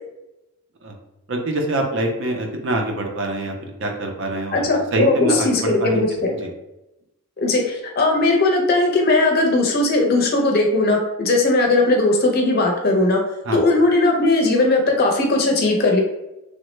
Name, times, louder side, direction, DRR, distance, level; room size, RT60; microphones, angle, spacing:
voice 1, 1.3-6.0 6.3-6.5 13.4-13.6, right 1 dB, 55° right, 2 dB, 0.5 m, -25 dB
voice 2, 4.5-6.3 7.4-13.2 13.5-16.0, left 2 dB, 45° left, 1 dB, 0.5 m, -18 dB
3.1 x 2.0 x 3.1 m, 0.93 s
head